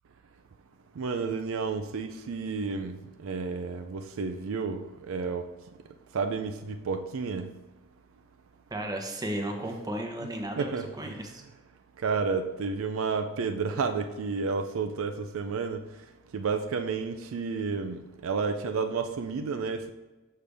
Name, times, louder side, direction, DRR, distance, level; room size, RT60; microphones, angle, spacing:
voice 1, 1.0-2.9 3.2-5.5 6.1-7.5 10.6-10.9 12.0-15.8 16.3-19.9, right 5 dB, 70° right, 7 dB, 0.4 m, -31 dB
voice 2, 8.7-11.4, right 1 dB, 20° right, 3 dB, 0.9 m, -34 dB
6.6 x 5.5 x 3.4 m, 1.1 s
head